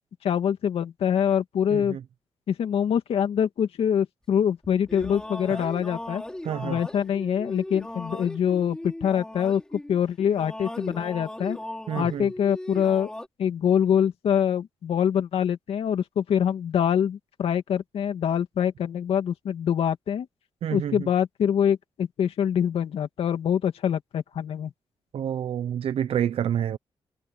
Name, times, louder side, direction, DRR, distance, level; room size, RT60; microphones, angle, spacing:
voice 1, 0.2-2.0 2.5-6.2 6.6-9.6 9.9-11.6 11.9-13.1 13.4-20.3 20.7-24.7, left 8 dB, 90° left, 2.6 m, -25 dB
voice 2, 1.7-2.0 5.5-5.6 6.4-6.8 11.9-12.3 20.6-21.1 25.1-26.8, right 9 dB, 85° right, 0.7 m, -28 dB
sound 1, 4.6-10.0 10.3-13.3, left 1 dB, 10° left, 4.6 m, -38 dB
wide cardioid pair, 155°, 10 cm